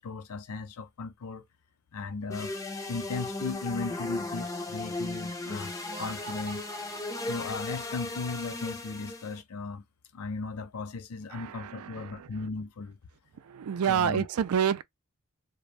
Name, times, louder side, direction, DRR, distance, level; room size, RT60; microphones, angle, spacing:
voice 1, 0.0-1.4 1.9-2.6 2.9-6.6 7.3-9.8 10.1-13.0 13.9-14.3, left 4 dB, 80° left, 0.5 m, -37 dB
sound 1, 2.3-9.4, left 2 dB, 15° left, 0.4 m, -36 dB
Laughter, 5.7-8.1, right 5 dB, 35° right, 0.6 m, -48 dB
voice 2, 11.3-12.3 13.5-14.8, right 8 dB, 80° right, 0.4 m, -28 dB
2.4 x 2.2 x 3.1 m
head